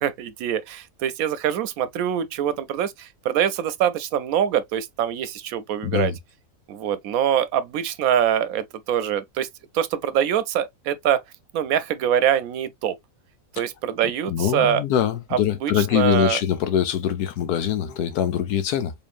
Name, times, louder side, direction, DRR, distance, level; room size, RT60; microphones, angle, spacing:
voice 1, 0.0-6.1 6.7-9.5 9.7-11.2 11.5-13.0 13.5-14.8 15.3-16.4, right 9 dB, 70° right, 1.0 m, -24 dB
voice 2, 5.8-6.2 14.3-18.9, left 10 dB, 80° left, 1.3 m, -23 dB
3.9 x 3.6 x 2.4 m
omnidirectional pair, 1.6 m